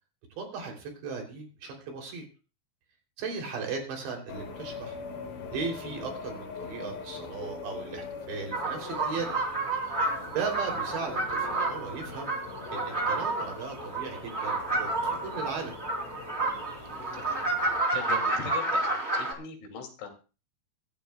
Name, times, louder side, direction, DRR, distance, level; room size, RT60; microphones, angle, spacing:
voice 1, 0.4-2.3 3.2-5.0 5.5-9.4 10.3-12.3 12.7-15.8, right 5 dB, 70° right, 2 dB, 5.3 m, -37 dB
sound 1, 4.3-17.8, left 5 dB, 50° left, 3.7 m, -42 dB
sound 2, 8.5-19.3, right 2 dB, 20° right, 2.3 m, -30 dB
voice 2, 17.9-20.1, left 6 dB, 80° left, 3 dB, 5.0 m, -40 dB
24.5 x 11.5 x 2.3 m, 0.34 s
omnidirectional pair, 5.4 m